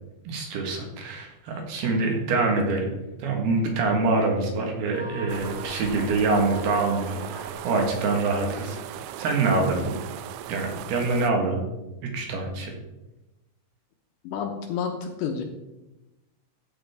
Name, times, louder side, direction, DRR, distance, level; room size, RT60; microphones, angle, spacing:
voice 1, 0.2-2.9 3.2-8.8 9.2-10.0 10.5-11.6 12.0-12.7, right 3 dB, 65° right, 2 dB, 3.2 m, -25 dB
sound 1, 4.9-8.7, equal, 5° left, 2.5 m, -43 dB
sound 2, 5.3-11.3, right 10 dB, 80° right, 2.8 m, -38 dB
voice 2, 14.2-15.4, left 6 dB, 75° left, 4 dB, 2.9 m, -30 dB
14.0 x 8.8 x 3.6 m, 1.0 s
omnidirectional pair, 5.4 m